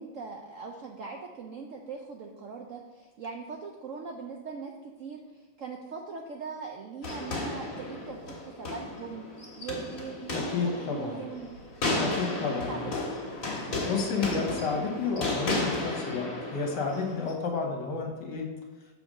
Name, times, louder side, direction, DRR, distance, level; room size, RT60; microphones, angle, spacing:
voice 1, 0.0-4.7 5.0-11.6 12.3-13.0, right 5 dB, 70° right, 2 dB, 0.7 m, -41 dB
sound 1, 7.0-17.3, left 2 dB, 50° left, 2.0 m, -33 dB
voice 2, 10.3-11.2 12.0-12.9 13.6-18.5, left 5 dB, 65° left, 2 dB, 1.8 m, -31 dB
6.9 x 3.7 x 6.3 m, 1.3 s
omnidirectional pair, 2.0 m